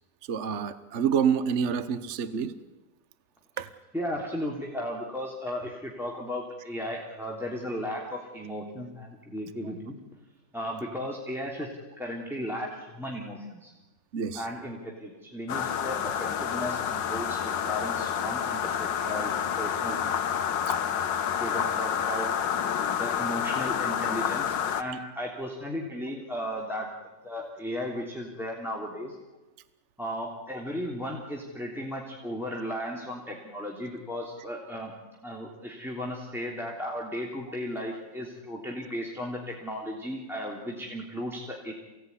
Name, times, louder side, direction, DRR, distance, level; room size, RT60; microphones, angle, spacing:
voice 1, 0.2-2.6 3.6-3.7 14.1-14.5 20.7-20.8 37.9-38.0, right 7 dB, 45° right, 13 dB, 1.1 m, -28 dB
voice 2, 3.9-10.0 10.5-13.7 14.3-20.0 21.3-22.3 22.9-29.2 30.0-34.9 35.2-41.7, equal, ahead, -2 dB, 3.2 m, -35 dB
sound 1, 15.5-24.8, left 8 dB, 80° left, 1.8 m, -29 dB
28.0 x 18.0 x 9.8 m, 1.1 s
omnidirectional pair, 1.9 m